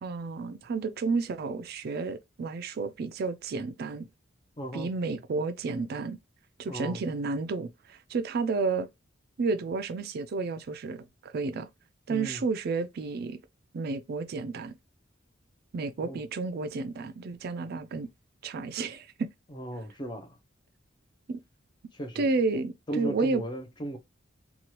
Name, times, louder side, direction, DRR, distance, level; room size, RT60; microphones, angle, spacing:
voice 1, 0.0-4.1 4.7-6.2 6.6-8.9 9.4-11.7 12.1-13.4 13.7-14.7 15.7-18.1 18.4-19.3 21.3-21.4 22.2-23.4, right 4 dB, 55° right, 0.4 m, -31 dB
voice 2, 4.6-4.9 6.7-7.0 12.1-12.4 16.0-16.2 19.5-20.4 21.9-22.3 22.9-24.0, right 1 dB, 25° left, 0.6 m, -36 dB
2.9 x 2.3 x 2.9 m
head